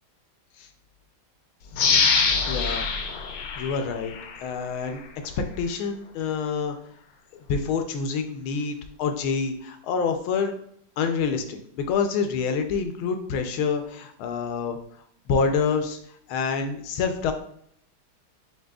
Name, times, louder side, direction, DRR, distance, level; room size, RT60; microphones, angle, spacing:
sound 1, 1.7-4.4 4.9-5.0, left 5 dB, 70° left, 1.0 m, -24 dB
voice 1, 2.5-2.9 3.6-4.1 4.4-5.0 5.4-6.8 7.5-10.5 11.0-14.8 15.3-16.0 16.3-17.3, left 5 dB, 85° left, 6 dB, 1.5 m, -27 dB
7.3 x 2.8 x 2.3 m, 0.68 s
omnidirectional pair, 2.2 m